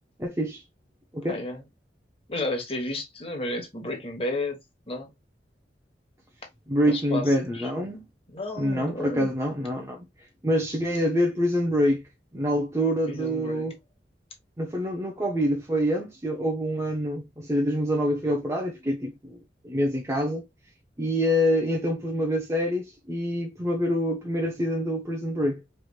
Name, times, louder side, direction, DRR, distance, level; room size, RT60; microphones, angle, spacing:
voice 1, 0.2-0.6 1.1-1.4 6.7-8.1 8.6-10.0 10.4-12.0 12.3-13.7 14.6-19.4 19.6-20.4 21.0-25.6, equal, 15° right, 0.8 m, -26 dB
voice 2, 1.3-1.6 2.3-4.6 4.9-5.1 6.9-7.7 8.3-9.3 13.1-13.7, left 2 dB, 35° left, 1.4 m, -32 dB
4.8 x 3.3 x 2.3 m
head